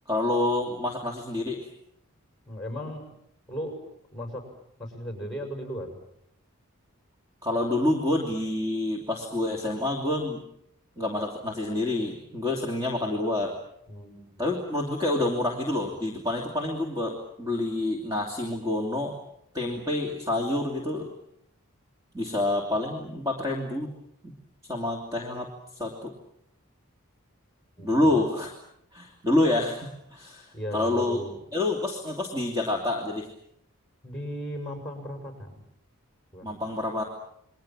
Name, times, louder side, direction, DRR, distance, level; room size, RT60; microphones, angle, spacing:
voice 1, 0.1-1.7 7.4-10.4 11.0-13.5 14.4-19.2 19.5-21.1 22.1-23.9 24.2-24.3 24.7-26.1 27.8-28.5 28.9-31.2 31.5-33.3 36.4-37.0, left 2 dB, 15° right, 0 dB, 2.9 m, -28 dB
voice 2, 2.5-3.0 3.5-3.8 4.1-4.4 4.8-5.9 13.9-14.4 27.8-28.1 30.5-31.3 34.0-35.5 36.3-36.5, equal, 5° left, 4 dB, 6.5 m, -36 dB
29.5 x 22.5 x 7.5 m, 0.73 s
head